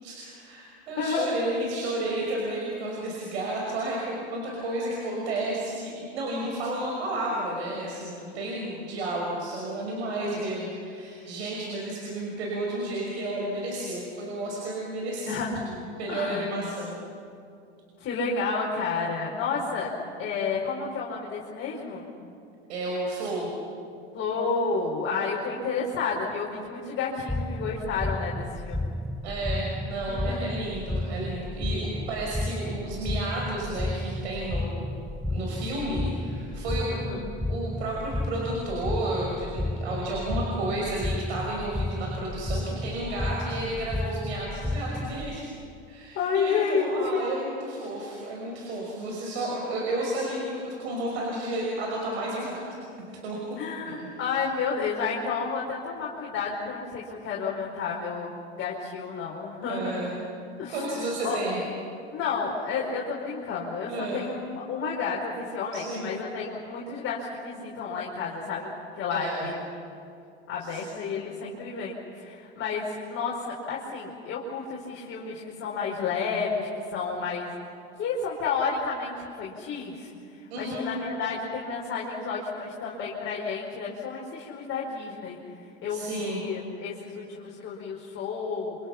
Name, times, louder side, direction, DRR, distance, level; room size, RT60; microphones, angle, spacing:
voice 1, 0.0-17.0 22.7-23.5 29.2-34.9 35.3-36.9 37.5-45.4 45.9-52.6 53.2-53.4 54.0-54.1 59.6-60.2 60.7-61.6 63.9-64.2 65.7-66.1 69.1-69.5 70.6-70.9 80.5-80.9 85.9-86.4, right 1 dB, 75° right, -2 dB, 6.0 m, -32 dB
voice 2, 1.0-1.3 10.2-10.5 15.3-15.6 16.1-16.5 18.0-19.9 20.2-22.1 24.1-29.0 30.1-30.5 36.9-37.3 46.1-47.2 53.6-60.1 60.6-61.4 62.1-69.7 70.5-77.6 78.0-80.1 80.6-85.4 85.8-88.8, left 5 dB, 40° left, -4 dB, 5.0 m, -31 dB
sound 1, 27.3-45.4, left 1 dB, ahead, 0.7 m, -32 dB
28.5 x 26.5 x 5.9 m, 2.5 s
hypercardioid pair, 100°, 33 cm